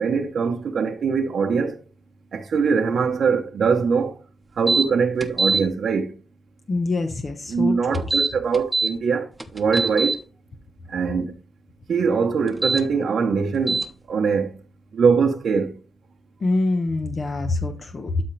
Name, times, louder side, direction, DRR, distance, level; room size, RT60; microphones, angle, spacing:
voice 1, 0.0-1.8 2.3-4.1 4.6-6.1 7.5-9.3 9.5-10.2 10.9-11.3 11.9-13.8 14.1-14.5 15.0-15.7, right 5 dB, 75° right, 0.9 m, -22 dB
sound 1, 4.7-4.9 5.2-5.6 7.9-8.9 9.4-10.2 12.5-12.8 13.7-13.9, right 3 dB, 15° right, 1.0 m, -22 dB
voice 2, 6.7-8.0 16.4-18.2, left 2 dB, 50° left, 1.1 m, -25 dB
12.0 x 4.4 x 3.3 m
cardioid pair, 70°, 0 cm